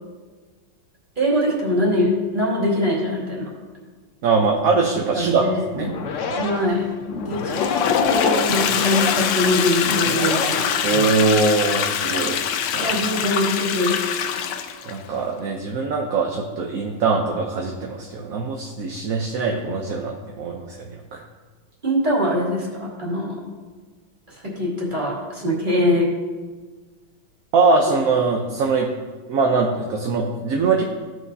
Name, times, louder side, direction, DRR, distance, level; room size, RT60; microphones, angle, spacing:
voice 1, 1.2-3.5 5.1-5.6 6.4-6.9 7.3-7.6 8.1-11.0 12.8-14.0 21.8-23.3 24.3-26.1, left 1 dB, 25° right, -5 dB, 2.5 m, -22 dB
voice 2, 4.2-5.5 5.7-5.9 6.3-6.4 10.8-12.5 12.7-13.0 14.9-21.2 27.5-28.9 29.3-30.8, right 4 dB, 60° right, 1 dB, 1.0 m, -22 dB
sound 1, 5.7-11.4, left 5 dB, 60° left, 0.8 m, -30 dB
Toilet flush, 7.3-15.0, left 8 dB, 90° left, 1.4 m, -23 dB
15.5 x 6.1 x 2.7 m, 1.4 s
omnidirectional pair, 2.0 m